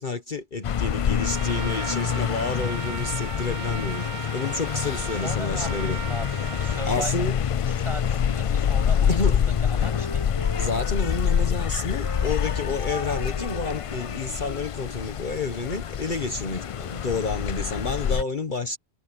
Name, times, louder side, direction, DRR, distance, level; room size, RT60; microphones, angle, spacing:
voice 1, 0.0-4.1 4.3-6.0 6.8-7.3 9.1-9.5 10.6-18.8, left 3 dB, 45° left, 1.3 m, -30 dB
sound 1, 0.6-18.2, left 8 dB, 65° left, 0.3 m, -26 dB
Trumpet, 1.2-6.9, right 9 dB, 75° right, 0.9 m, -37 dB
voice 2, 5.1-7.3 7.6-10.2, right 1 dB, 25° right, 7.9 m, -38 dB
Wind instrument woodwind instrument, 8.5-11.5 12.0-15.8, equal, 25° left, 4.2 m, -41 dB
omnidirectional pair, 1.1 m